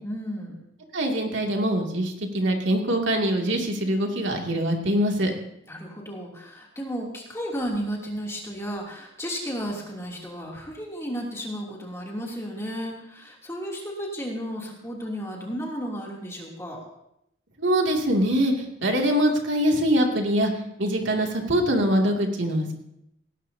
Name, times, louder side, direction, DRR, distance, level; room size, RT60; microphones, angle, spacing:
voice 1, 0.0-0.6 5.7-16.9, equal, 15° left, -2 dB, 2.9 m, -33 dB
voice 2, 0.9-5.3 17.6-20.5 20.8-22.7, equal, 75° right, 1 dB, 2.6 m, -23 dB
18.5 x 18.5 x 2.8 m, 0.78 s
head